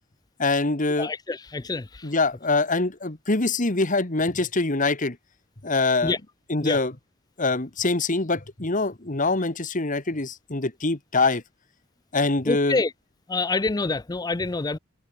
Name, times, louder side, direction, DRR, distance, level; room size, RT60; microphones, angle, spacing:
voice 1, 0.4-1.1 2.0-5.2 5.6-6.2 6.5-6.9 7.4-11.4 12.1-12.8, left 3 dB, 40° left, 1.7 m, -24 dB
voice 2, 1.0-2.1 6.0-6.2 6.6-6.8 12.5-12.9 13.3-14.8, left 3 dB, 20° left, 0.4 m, -26 dB
head